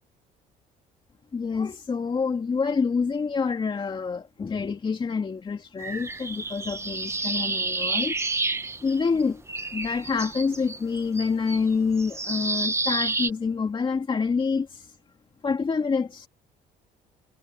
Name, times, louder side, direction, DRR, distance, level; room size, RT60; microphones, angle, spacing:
voice 1, 1.3-8.1 8.8-9.4 9.7-14.9 15.4-16.3, left 5 dB, 30° left, 2.5 m, -27 dB
sound 1, 5.8-9.2 9.5-13.3, right 3 dB, 15° right, 1.4 m, -30 dB
cardioid pair, 110°, 17 cm